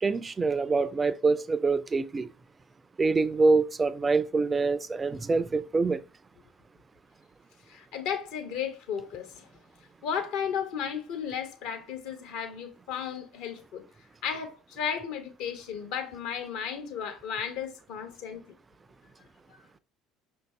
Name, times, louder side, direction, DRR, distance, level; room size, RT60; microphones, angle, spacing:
voice 1, 0.0-2.3 3.0-6.0, right 3 dB, 25° right, 0.3 m, -25 dB
voice 2, 7.7-9.5 10.0-13.8 14.2-18.4 19.5-19.6, left 7 dB, 65° left, 0.9 m, -34 dB
5.6 x 2.6 x 3.2 m
hypercardioid pair, 60°, 0 cm